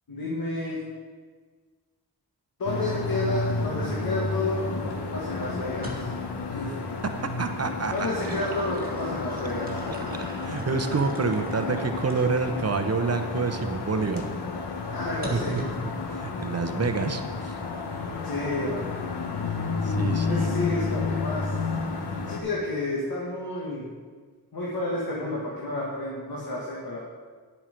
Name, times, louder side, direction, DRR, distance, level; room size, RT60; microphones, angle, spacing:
voice 1, 0.1-0.8 2.6-6.0 6.5-6.7 7.9-9.8 14.9-15.6 18.2-18.9 20.3-21.5 22.3-23.9 24.5-27.0, left 2 dB, 65° left, -5 dB, 1.8 m, -30 dB
sound 1, 2.7-22.4, left 4 dB, 85° left, 1.1 m, -31 dB
sound 2, 5.8-6.4 7.6-12.5 13.1-13.2 15.2-15.9, right 1 dB, 25° right, 2.0 m, -41 dB
voice 2, 7.2-8.4 10.2-14.3 15.3-17.6 19.8-20.5, right 4 dB, 40° right, 7 dB, 0.7 m, -28 dB
9.9 x 7.4 x 5.1 m, 1.5 s
wide cardioid pair, 140°, 38 cm